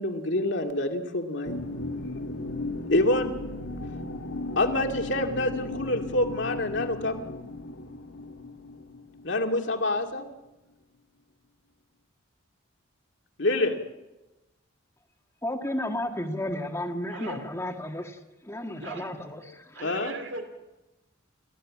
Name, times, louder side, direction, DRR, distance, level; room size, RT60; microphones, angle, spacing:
voice 1, 0.0-1.6 2.9-3.3 4.6-7.2 9.2-10.3 13.4-13.8 19.8-20.1, left 1 dB, 60° left, 4 dB, 2.4 m, -26 dB
sound 1, 1.4-10.0, left 2 dB, 75° left, 2.0 m, -36 dB
voice 2, 15.4-19.9, left 1 dB, 15° left, 3 dB, 1.8 m, -33 dB
voice 3, 17.1-17.4 18.8-19.1 19.7-20.4, right 3 dB, 60° right, 7 dB, 2.7 m, -38 dB
29.5 x 15.0 x 8.6 m, 1.1 s
head